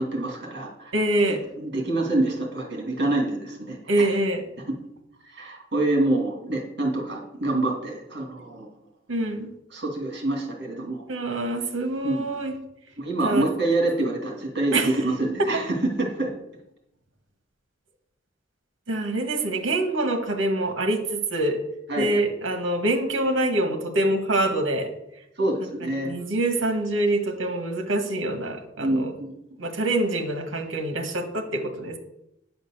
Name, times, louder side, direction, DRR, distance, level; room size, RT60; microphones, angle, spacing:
voice 1, 0.0-0.9 1.3-4.1 4.7-4.8 5.2-8.7 9.7-11.0 12.0-12.4 13.0-16.3 21.9-22.2 25.4-26.1 28.8-29.3, right 2 dB, 55° right, 1 dB, 2.6 m, -26 dB
voice 2, 0.9-1.4 3.9-4.4 9.1-9.5 11.1-12.5 13.2-13.5 14.7-14.9 15.4-15.5 18.9-21.6 22.0-24.9 25.6-29.1 29.6-32.0, right 1 dB, 75° right, 6 dB, 1.5 m, -25 dB
9.7 x 5.2 x 6.7 m, 0.82 s
head